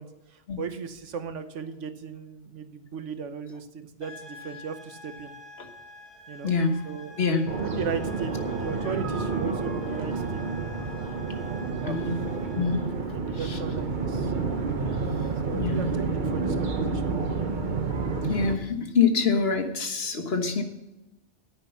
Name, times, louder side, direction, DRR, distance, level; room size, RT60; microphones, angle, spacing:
voice 1, 0.0-5.3 6.3-6.5 6.8-7.2 7.5-10.7 11.8-12.2 12.5-12.7 12.9-14.3 15.4-17.2, right 6 dB, 85° right, 9 dB, 1.4 m, -37 dB
sound 1, 4.0-12.9, left 2 dB, 20° left, 2.7 m, -47 dB
voice 2, 6.4-6.8 7.2-7.5 11.8-12.2 12.5-12.9 13.5-13.6 15.2-15.9 18.3-20.6, left 5 dB, 60° left, 5 dB, 1.6 m, -26 dB
sound 2, 7.5-18.6, right 4 dB, 45° right, 1.2 m, -29 dB
9.8 x 9.7 x 5.7 m, 0.98 s
omnidirectional pair, 1.2 m